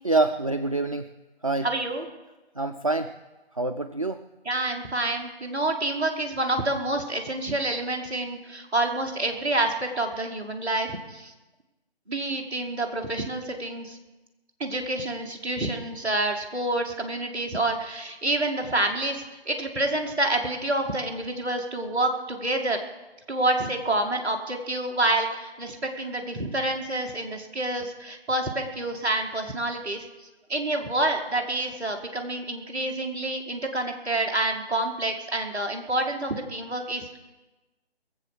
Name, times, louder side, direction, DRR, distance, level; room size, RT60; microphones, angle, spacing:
voice 1, 0.0-1.1 1.4-1.7 2.6-3.1 3.5-4.2, right 2 dB, 35° right, 6 dB, 0.4 m, -25 dB
voice 2, 1.6-2.0 4.4-11.3 12.1-14.0 14.6-22.8 23.3-37.2, right 2 dB, 5° right, -7 dB, 0.9 m, -28 dB
21.5 x 7.6 x 6.6 m, 1.1 s
figure-of-eight pair, 150°, 32 cm